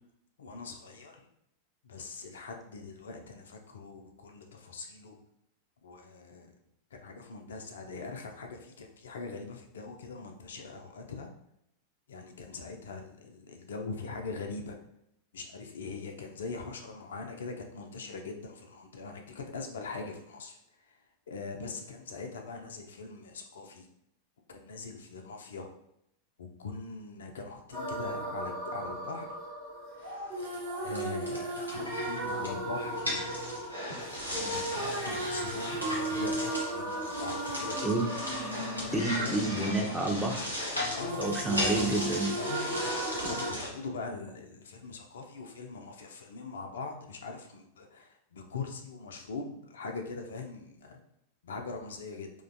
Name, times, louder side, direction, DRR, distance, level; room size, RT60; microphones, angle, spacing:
voice 1, 0.4-1.2 1.8-5.2 5.8-6.5 6.9-11.3 12.1-14.8 15.3-20.6 20.9-21.0 21.3-23.9 24.5-25.7 26.4-29.3 30.4-33.6 34.3-37.9 38.8-39.3 40.9-41.5 42.4-43.0 43.3-51.0 51.4-52.3, left 4 dB, 65° left, 3 dB, 0.3 m, -42 dB
sound 1, 27.7-40.7 41.0-43.5, right 2 dB, 40° right, 0.7 m, -36 dB
sound 2, 30.0-43.7, left 1 dB, 90° right, 0.6 m, -37 dB
voice 2, 38.9-40.5 41.2-42.3, right 2 dB, 5° right, 0 dB, 0.4 m, -29 dB
2.5 x 2.2 x 2.5 m, 0.77 s
figure-of-eight pair, 90°, 0 cm